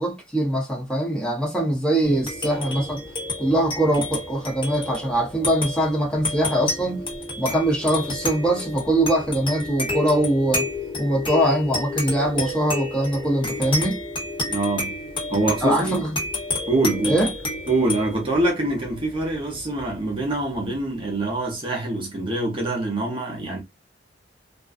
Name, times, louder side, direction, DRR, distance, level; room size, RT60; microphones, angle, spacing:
voice 1, 0.0-3.0 3.4-7.0 7.4-10.7 11.0-14.0 15.6-16.1 17.0-17.3, right 1 dB, 5° left, 0.8 m, -22 dB
sound 1, 2.0-20.9, left 2 dB, 30° left, 1.0 m, -31 dB
voice 2, 14.5-14.9 15.3-16.0 16.7-17.2 17.7-23.6, right 2 dB, 30° right, 0.7 m, -24 dB
2.5 x 2.2 x 2.4 m
head